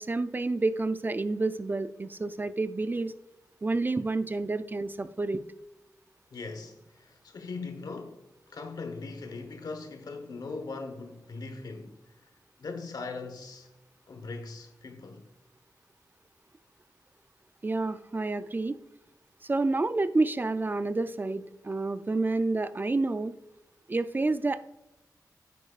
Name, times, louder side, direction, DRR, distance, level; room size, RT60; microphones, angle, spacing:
voice 1, 0.0-3.1 3.6-5.5 17.6-18.8 19.4-23.3 23.9-24.6, right 3 dB, 30° right, 0.4 m, -29 dB
voice 2, 6.3-11.9 12.2-12.3 12.6-13.7 14.1-15.3, left 3 dB, 70° left, 1.1 m, -40 dB
9.9 x 8.2 x 2.4 m
wide cardioid pair, 80°, 7 cm